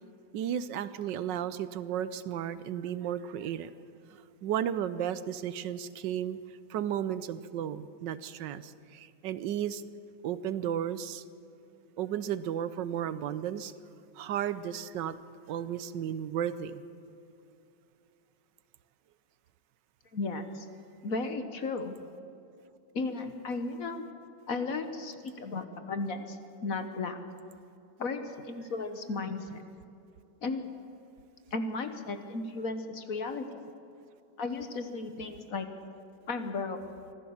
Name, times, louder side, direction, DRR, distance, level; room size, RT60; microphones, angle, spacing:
voice 1, 0.3-3.7 4.1-6.4 6.7-9.8 10.2-11.2 12.0-13.7 14.2-15.2 15.5-16.8, right 10 dB, 70° right, 14 dB, 1.3 m, -34 dB
voice 2, 20.1-20.6 21.0-22.0 22.9-24.0 24.5-27.2 28.0-29.6 30.4-30.6 31.5-33.7 34.4-35.7 36.3-36.8, left 3 dB, 50° left, 8 dB, 1.5 m, -35 dB
24.5 x 15.0 x 7.2 m, 2.8 s
omnidirectional pair, 2.2 m